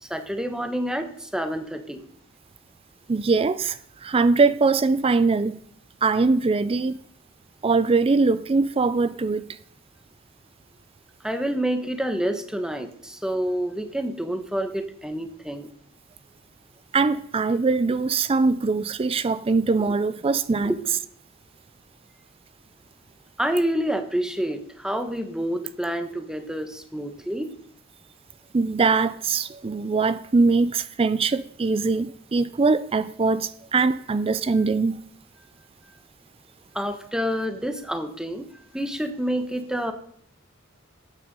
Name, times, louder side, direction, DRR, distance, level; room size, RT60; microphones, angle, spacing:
voice 1, 0.0-2.0 11.2-15.7 20.6-20.8 23.4-27.5 36.7-38.5 38.7-39.9, equal, 5° right, 1.1 m, -28 dB
voice 2, 3.1-5.6 6.0-7.0 7.6-9.6 16.9-20.7 28.5-35.0, right 4 dB, 25° right, 0.4 m, -22 dB
13.5 x 8.9 x 5.2 m
head